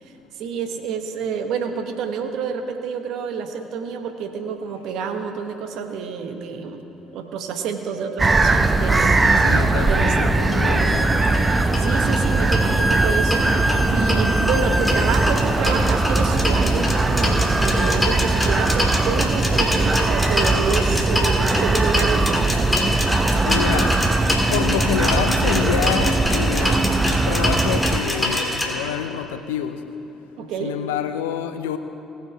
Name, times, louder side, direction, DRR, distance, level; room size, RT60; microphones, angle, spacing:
voice 1, 0.4-6.9 7.1-9.2 9.9-10.4 11.8-13.4 13.9-22.6 30.4-30.8, right 6 dB, 65° right, 6 dB, 1.1 m, -28 dB
sound 1, 8.2-28.0, right 2 dB, 25° right, 0.8 m, -20 dB
voice 2, 9.4-11.1 23.3-24.0 24.5-26.8 27.1-29.8 30.6-31.8, left 9 dB, 80° left, 9 dB, 0.5 m, -27 dB
sound 2, 10.8-15.4 17.3-19.0 20.0-20.1 20.3-20.5 21.3-21.4 23.6-23.7 25.8-25.9 26.6-26.9 27.5-28.4, right 1 dB, 5° right, 1.0 m, -28 dB
sound 3, 11.3-11.4 11.7-11.8 12.1-12.2 12.5-13.4 13.7-28.7, left 1 dB, 15° left, 2.9 m, -25 dB
19.5 x 6.6 x 4.7 m, 2.9 s
hypercardioid pair, 50°, 0 cm